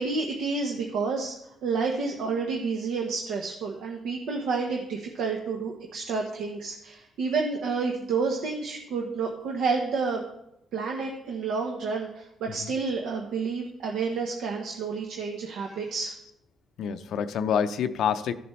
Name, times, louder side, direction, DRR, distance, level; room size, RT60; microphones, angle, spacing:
voice 1, 0.0-1.3 1.6-10.2 10.7-16.1, right 4 dB, 80° right, 1 dB, 1.0 m, -29 dB
voice 2, 16.8-18.3, left 8 dB, 75° left, 11 dB, 0.6 m, -27 dB
14.5 x 6.9 x 3.2 m, 0.82 s
cardioid pair, 90°, 0 cm